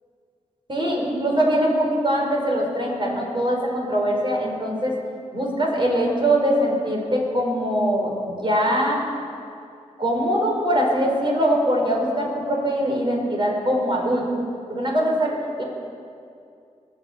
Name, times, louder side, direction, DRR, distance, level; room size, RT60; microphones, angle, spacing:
voice 1, 0.7-5.0 5.3-9.0 10.0-14.2 14.7-15.6, equal, 40° right, -1 dB, 4.9 m, -22 dB
20.5 x 7.2 x 8.7 m, 2.4 s
cardioid pair, 45°, 13 cm